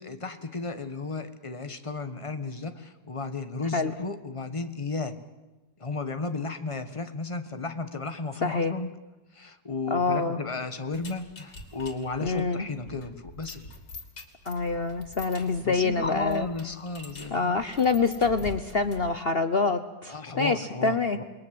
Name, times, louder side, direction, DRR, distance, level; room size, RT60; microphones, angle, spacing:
voice 1, 0.0-5.1 5.8-8.9 9.3-13.7 15.6-17.6 20.1-21.2, left 3 dB, 20° left, 8 dB, 1.3 m, -34 dB
voice 2, 8.4-8.7 9.9-10.4 12.2-12.7 14.5-16.5 17.3-21.2, left 4 dB, 45° left, 10 dB, 0.9 m, -26 dB
sound 1, 10.9-19.2, left 2 dB, 65° left, 3.4 m, -46 dB
28.5 x 21.5 x 7.8 m, 1.1 s
omnidirectional pair, 1.8 m